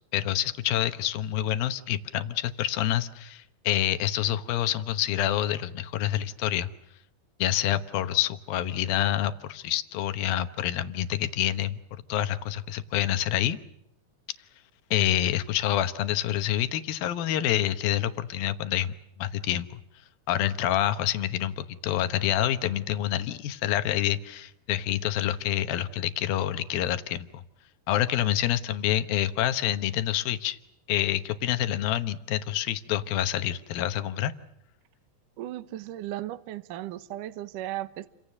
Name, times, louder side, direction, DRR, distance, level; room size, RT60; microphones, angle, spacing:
voice 1, 0.1-6.7 7.4-11.8 12.1-13.6 14.9-18.9 19.2-19.8 20.3-27.4 27.9-30.6 30.9-34.3, left 12 dB, 70° left, 2.4 m, -27 dB
voice 2, 35.4-38.1, right 14 dB, 85° right, 1.8 m, -36 dB
30.0 x 25.5 x 6.6 m
omnidirectional pair, 5.4 m